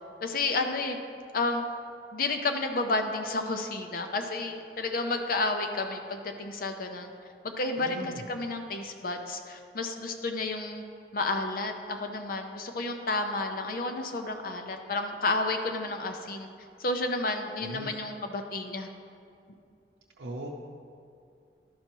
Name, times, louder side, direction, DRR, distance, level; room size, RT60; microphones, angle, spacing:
voice 1, 0.2-1.0 1.3-1.6 2.1-7.1 7.4-10.8 11.1-16.5 16.8-18.9, left 2 dB, 55° left, 5 dB, 0.6 m, -31 dB
voice 2, 7.8-8.2 17.6-17.9 20.2-20.5, right 1 dB, 80° right, -3 dB, 0.6 m, -38 dB
12.0 x 5.6 x 3.0 m, 2.4 s
head